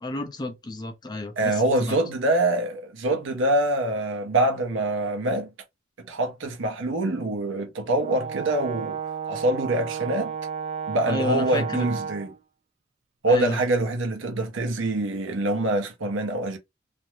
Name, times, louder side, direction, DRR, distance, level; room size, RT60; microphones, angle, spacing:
voice 1, 0.0-2.0 11.1-11.9 13.3-13.6, left 2 dB, 20° left, 0.5 m, -31 dB
voice 2, 1.4-5.5 6.0-9.0 9.3-10.4 10.9-12.3 13.2-16.6, right 1 dB, 80° right, 0.7 m, -25 dB
Brass instrument, 8.0-12.4, right 7 dB, 35° right, 0.3 m, -32 dB
2.5 x 2.1 x 3.0 m
head